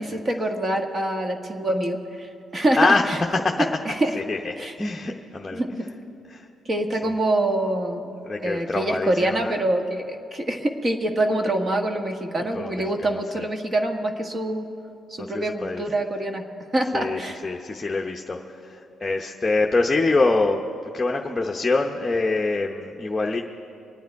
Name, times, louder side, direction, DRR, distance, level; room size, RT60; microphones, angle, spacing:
voice 1, 0.0-4.2 4.6-4.8 5.5-5.9 6.6-8.1 8.4-14.7 15.1-16.4 16.7-17.4, right 1 dB, 35° right, 4 dB, 1.5 m, -25 dB
voice 2, 4.3-5.6 6.3-6.4 8.2-9.5 12.5-12.8 15.2-15.8 16.9-18.4 19.0-20.6 20.9-23.4, left 3 dB, 20° left, 1 dB, 0.8 m, -24 dB
24.5 x 9.4 x 4.7 m, 2.7 s
cardioid pair, 90°, 0 cm